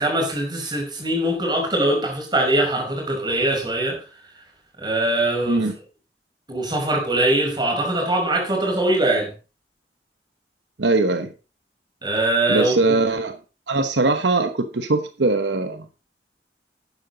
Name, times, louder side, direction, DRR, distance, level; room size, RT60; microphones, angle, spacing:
voice 1, 0.0-4.0 4.8-5.7 6.5-9.3 12.0-12.9, right 1 dB, 25° right, 1 dB, 5.4 m, -22 dB
voice 2, 10.8-11.3 12.5-13.3 13.7-15.9, right 3 dB, 85° right, 8 dB, 1.0 m, -21 dB
12.0 x 9.7 x 3.9 m, 0.32 s
head